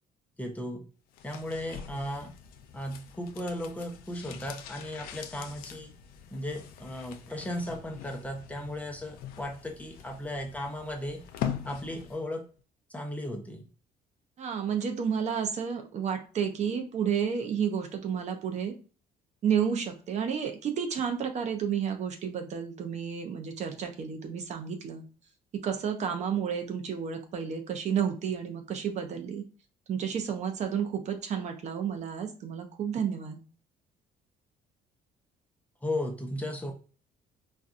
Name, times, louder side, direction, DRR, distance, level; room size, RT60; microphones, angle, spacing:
voice 1, 0.4-0.9 1.2-2.3 2.7-5.9 6.3-11.2 11.7-12.4 12.9-13.6 35.8-36.7, left 1 dB, 10° left, 2 dB, 0.7 m, -36 dB
sound 1, 1.1-12.3 12.6-12.7, left 9 dB, 80° left, 0.5 m, -42 dB
voice 2, 14.4-18.7 19.4-25.0 25.6-29.4 29.9-33.4, right 7 dB, 50° right, 6 dB, 0.6 m, -31 dB
4.1 x 2.3 x 2.5 m, 0.36 s
cardioid pair, 110°, 15 cm